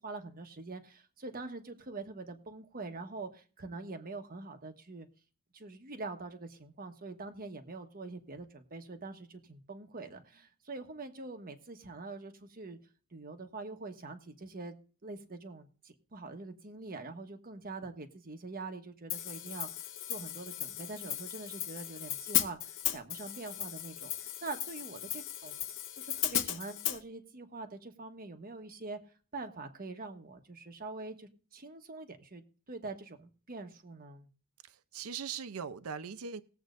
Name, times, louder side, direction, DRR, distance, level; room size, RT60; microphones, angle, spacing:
voice 1, 0.0-5.1 5.5-12.8 13.1-14.8 15.0-19.7 20.1-25.6 26.0-29.0 29.3-34.3, right 3 dB, 45° right, 6 dB, 1.2 m, -44 dB
Hi-hat, 19.1-27.0, left 11 dB, 60° left, 0.7 m, -36 dB
voice 2, 34.7-36.4, right 6 dB, 80° right, 13 dB, 0.6 m, -40 dB
19.5 x 7.8 x 2.6 m, 0.39 s
head